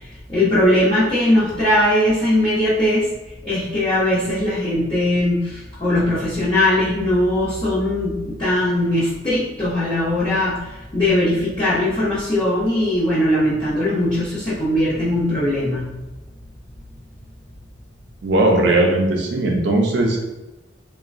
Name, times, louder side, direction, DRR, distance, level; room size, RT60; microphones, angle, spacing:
voice 1, 0.0-3.1 3.4-15.9, left 1 dB, 25° left, -12 dB, 0.7 m, -20 dB
voice 2, 18.2-20.2, right 2 dB, 65° right, 0 dB, 0.5 m, -18 dB
2.9 x 2.1 x 2.5 m, 1.1 s
head